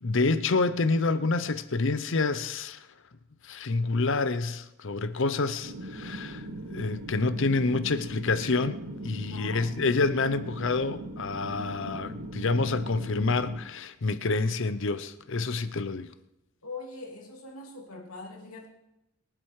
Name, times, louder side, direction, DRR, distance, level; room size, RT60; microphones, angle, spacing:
voice 1, 0.0-2.9 3.4-6.4 6.7-16.1, left 3 dB, 60° left, 0.7 m, -28 dB
sound 1, 5.6-13.6, right 1 dB, 90° right, 2.0 m, -40 dB
voice 2, 9.3-9.7 16.6-18.7, left 3 dB, 80° left, 2.7 m, -42 dB
23.0 x 7.8 x 4.8 m
head